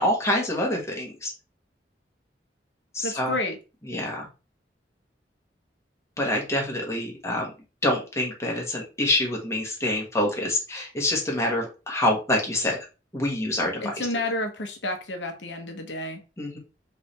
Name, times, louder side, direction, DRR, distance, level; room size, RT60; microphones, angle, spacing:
voice 1, 0.0-1.3 2.9-3.3 3.9-4.3 6.2-7.5 7.8-12.8 13.1-14.1 16.4-16.6, left 1 dB, 15° left, -1 dB, 1.3 m, -26 dB
voice 2, 3.0-3.6 13.8-16.2, left 1 dB, 80° left, 5 dB, 0.9 m, -30 dB
3.7 x 3.2 x 4.0 m, 0.31 s
head